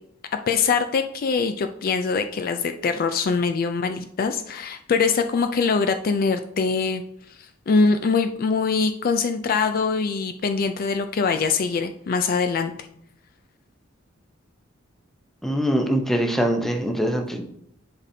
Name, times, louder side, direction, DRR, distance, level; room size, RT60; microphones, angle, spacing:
voice 1, 0.5-7.0 7.7-12.7, left 5 dB, 45° left, 8 dB, 0.4 m, -23 dB
voice 2, 15.4-17.4, equal, ahead, 2 dB, 0.7 m, -23 dB
10.0 x 4.1 x 2.7 m, 0.71 s
head